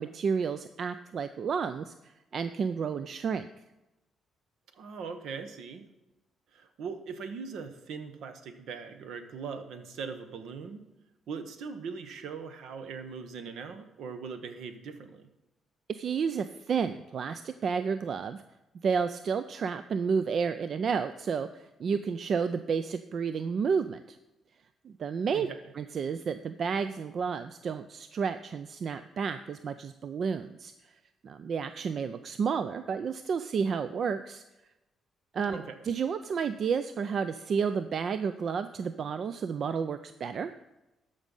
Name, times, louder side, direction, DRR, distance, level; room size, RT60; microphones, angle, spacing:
voice 1, 0.0-3.5 15.9-18.4 18.8-24.0 24.8-25.5 25.8-30.7 31.2-34.4 35.3-40.5, right 6 dB, 55° right, 11 dB, 0.4 m, -31 dB
voice 2, 4.7-5.9 6.5-10.8 11.3-15.3 25.3-25.6 35.5-35.8, right 5 dB, 75° right, 8 dB, 1.0 m, -40 dB
13.5 x 5.3 x 5.4 m, 0.97 s
cardioid pair, 90°, 0 cm